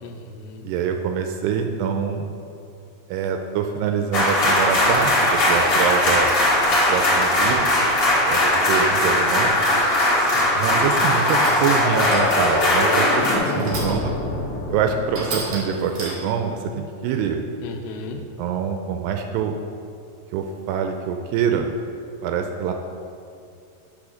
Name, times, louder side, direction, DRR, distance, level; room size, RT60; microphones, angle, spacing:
voice 1, 0.0-0.7 10.3-10.5 17.6-18.2, left 4 dB, 90° left, 4 dB, 2.9 m, -36 dB
voice 2, 0.6-2.3 3.1-6.3 6.7-7.7 8.3-9.5 10.6-14.1 14.7-17.4 18.4-19.6 20.3-21.7 22.2-22.7, right 7 dB, 85° right, 5 dB, 2.5 m, -25 dB
sound 1, 4.1-13.4, left 1 dB, 50° left, 1.3 m, -19 dB
sound 2, 8.1-16.0, left 2 dB, 70° left, 3.0 m, -27 dB
sound 3, 10.0-10.3 11.0-11.8 12.0-12.6 13.5-14.2 14.6-14.7 15.1-16.5, right 2 dB, 50° right, 2.3 m, -33 dB
8.4 x 6.3 x 6.3 m, 2.5 s
omnidirectional pair, 5.1 m